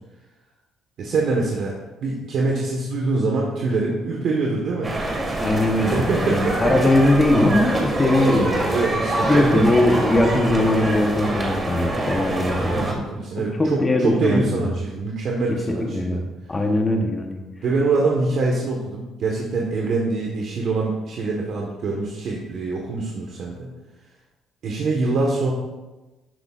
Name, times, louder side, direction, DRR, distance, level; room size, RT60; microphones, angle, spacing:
voice 1, 1.0-1.7 2.0-4.9 5.9-6.9 8.7-9.7 12.7-16.2 17.6-23.7 24.6-25.5, right 3 dB, 60° right, -1 dB, 1.4 m, -24 dB
sound 1, 4.8-12.9, right 2 dB, 25° right, 1.8 m, -25 dB
voice 2, 5.1-8.8 9.2-13.0 13.6-14.7 15.5-17.4, left 1 dB, 20° left, 3 dB, 1.1 m, -20 dB
11.5 x 8.1 x 2.5 m, 1.1 s
cardioid pair, 110°, 0 cm